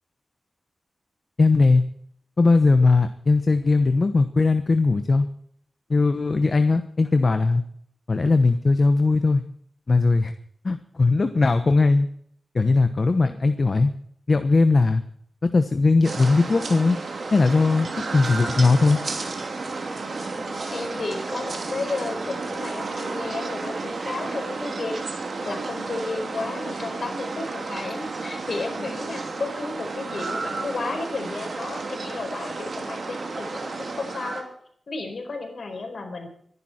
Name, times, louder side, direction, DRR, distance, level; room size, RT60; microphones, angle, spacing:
voice 1, 1.4-1.8 2.4-5.3 5.9-7.6 8.1-9.4 9.9-10.3 10.6-12.1 12.5-13.9 14.3-15.0 15.5-17.0 17.3-17.9 18.1-19.0, left 3 dB, 45° left, 9 dB, 1.0 m, -19 dB
sound 1, 16.0-34.4, right 3 dB, 65° right, 2.9 m, -32 dB
voice 2, 20.4-25.1 25.4-34.5 34.9-36.3, left 3 dB, 65° left, 4 dB, 4.6 m, -33 dB
24.5 x 11.0 x 4.4 m, 0.65 s
wide cardioid pair, 90°, 0 cm